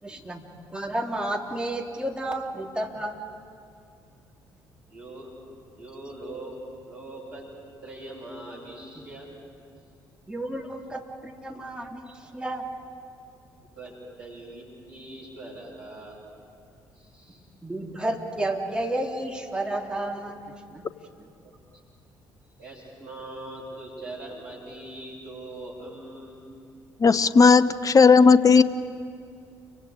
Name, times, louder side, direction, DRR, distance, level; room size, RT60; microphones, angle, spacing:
voice 1, 0.0-3.2 10.3-12.7 17.6-20.9 21.2-21.3, right 1 dB, 10° right, 1 dB, 3.3 m, -31 dB
voice 2, 4.9-5.3 5.7-6.6 6.8-7.5 7.8-9.3 13.5-16.2 16.9-17.4 21.4-21.6 22.6-26.4, right 2 dB, 80° right, -5 dB, 7.9 m, -41 dB
voice 3, 27.0-28.6, left 5 dB, 30° left, 14 dB, 0.7 m, -15 dB
29.5 x 24.5 x 5.0 m, 2.3 s
figure-of-eight pair, 45°, 11 cm